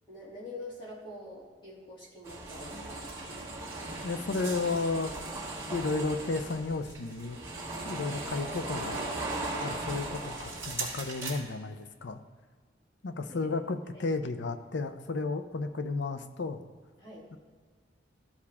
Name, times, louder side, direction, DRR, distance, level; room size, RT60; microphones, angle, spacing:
voice 1, 0.1-3.1 13.3-13.5 13.9-14.1 17.0-17.3, left 2 dB, 25° left, -7 dB, 2.5 m, -45 dB
sound 1, 2.2-11.4, right 2 dB, 15° right, 1.6 m, -38 dB
voice 2, 4.0-5.1 5.7-7.4 7.8-9.0 9.6-12.2 13.0-16.6 17.3-17.4, left 3 dB, 65° left, 9 dB, 0.6 m, -33 dB
13.5 x 4.8 x 3.5 m, 1.5 s
head